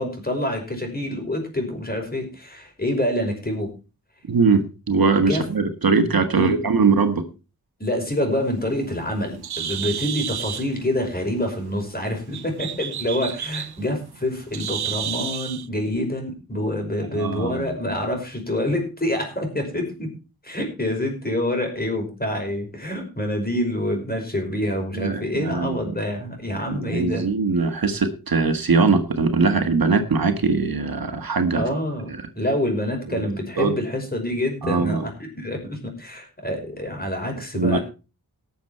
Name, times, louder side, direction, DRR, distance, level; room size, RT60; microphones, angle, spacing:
voice 1, 0.0-3.7 5.2-5.5 6.3-6.7 7.8-20.1 20.4-27.3 31.5-37.8, left 1 dB, 25° left, 3 dB, 5.6 m, -27 dB
voice 2, 4.3-7.2 17.1-17.6 24.9-25.9 26.7-31.6 33.1-33.2 33.6-33.8 34.6-35.0 37.5-37.8, right 4 dB, 65° right, 7 dB, 1.6 m, -21 dB
Bird, 8.4-15.7, right 9 dB, 85° right, 0.7 m, -32 dB
18.5 x 7.2 x 4.4 m, 0.32 s
wide cardioid pair, 80°, 37 cm